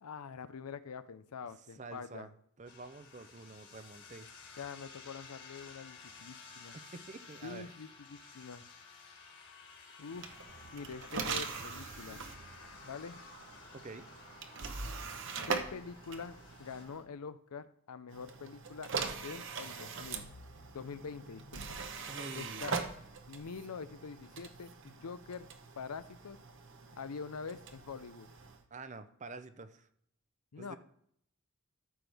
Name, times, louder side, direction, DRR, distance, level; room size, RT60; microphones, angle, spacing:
voice 1, 0.0-2.3 4.6-6.8 7.4-8.6 10.0-10.3 10.7-12.2 12.8-13.2 15.5-18.9 19.2-20.3 20.7-21.8 22.3-22.7 23.3-25.5 25.8-26.4 26.9-28.3 30.5-30.8, left 5 dB, 85° left, 13 dB, 0.6 m, -45 dB
voice 2, 1.8-2.3 2.6-4.3 6.7-7.7 13.7-14.0 22.1-22.7 28.7-29.9 30.6-30.8, right 3 dB, 30° right, 11 dB, 0.6 m, -48 dB
sound 1, 2.7-16.8, left 4 dB, 50° left, 2.1 m, -54 dB
sound 2, 10.1-17.0 18.1-28.6, right 5 dB, 55° right, 0.9 m, -42 dB
13.5 x 6.1 x 3.4 m, 0.69 s
head